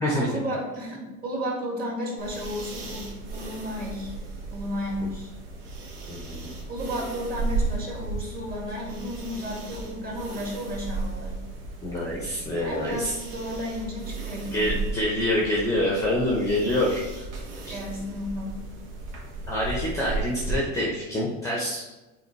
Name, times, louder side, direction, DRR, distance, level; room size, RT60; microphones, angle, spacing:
voice 1, 0.3-4.1 4.5-5.3 6.7-11.4 12.6-14.8 17.7-18.6, equal, 20° right, -3 dB, 1.9 m, -33 dB
sound 1, 2.2-20.5, right 3 dB, 65° right, 1.8 m, -35 dB
voice 2, 6.1-6.5 11.8-13.1 14.5-17.3 17.7-17.8 19.5-21.9, left 1 dB, 5° left, -3 dB, 0.8 m, -26 dB
8.0 x 4.4 x 3.2 m, 1.1 s
supercardioid pair, 145°, 41 cm